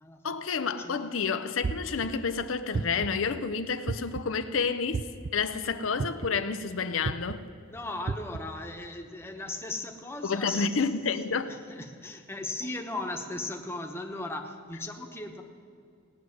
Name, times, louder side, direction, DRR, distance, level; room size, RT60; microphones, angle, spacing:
voice 1, 0.2-7.4 10.2-11.6, left 5 dB, 80° left, 0.6 m, -30 dB
sound 1, 1.6-2.1 2.7-3.2 3.9-4.3 4.9-5.3 6.0-6.4 7.0-7.4 8.1-8.4, right 4 dB, 45° right, 0.4 m, -32 dB
voice 2, 7.7-15.4, left 2 dB, 10° left, 1.0 m, -37 dB
17.5 x 6.3 x 9.5 m
head